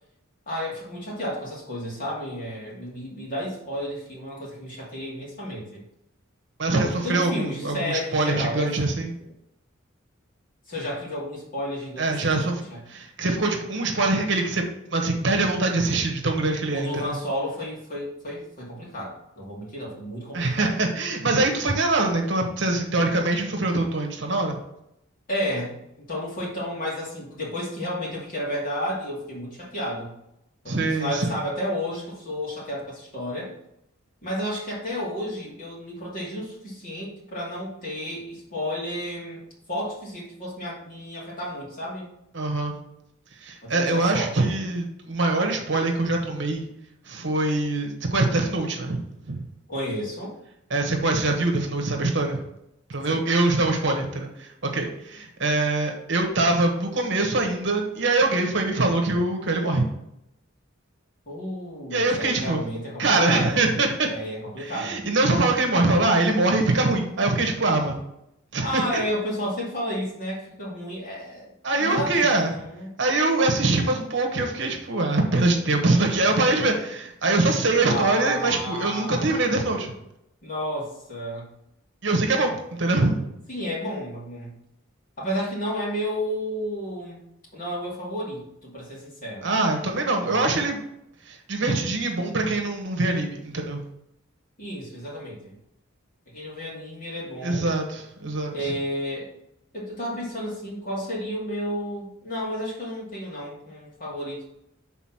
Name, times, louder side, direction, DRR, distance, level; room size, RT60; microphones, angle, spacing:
voice 1, 0.5-5.8 6.7-8.7 10.7-12.4 12.7-12.8 16.7-20.8 25.3-25.8 26.1-30.1 30.6-33.6 34.2-39.4 39.7-42.1 43.6-44.5 49.7-50.3 53.1-53.2 61.3-63.7 64.1-65.1 68.6-71.5 71.8-73.0 77.9-79.6 80.4-81.5 83.5-84.5 85.2-87.2 87.5-89.5 90.2-90.4 94.6-95.5 96.3-97.7 98.5-99.3 99.7-104.5, equal, 40° left, -4 dB, 2.4 m, -32 dB
voice 2, 6.6-9.1 12.0-12.6 12.9-14.6 14.9-17.1 20.3-24.6 30.7-31.4 42.3-42.7 43.4-46.7 47.1-49.4 50.7-52.4 52.9-59.9 61.9-62.6 63.0-64.1 64.6-68.0 68.5-68.8 71.6-72.6 73.0-79.9 82.0-83.2 89.4-90.8 91.2-93.8 97.4-98.5, right 2 dB, 60° right, 2 dB, 1.2 m, -23 dB
6.0 x 4.0 x 6.0 m, 0.81 s
head